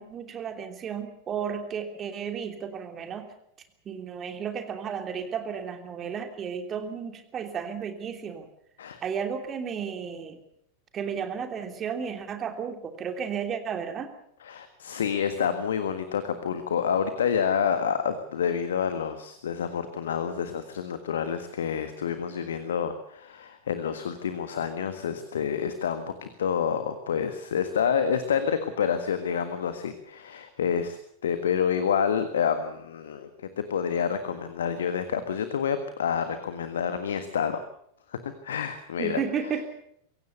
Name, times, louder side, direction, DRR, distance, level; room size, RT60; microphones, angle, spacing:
voice 1, 0.0-3.3 3.8-8.5 9.0-10.4 10.9-14.1 39.0-39.7, right 7 dB, 25° right, 7 dB, 3.0 m, -33 dB
voice 2, 14.4-37.6 38.1-39.2, left 7 dB, 65° left, 10 dB, 1.6 m, -28 dB
24.0 x 16.5 x 6.9 m, 0.72 s
figure-of-eight pair, 90°, 0 cm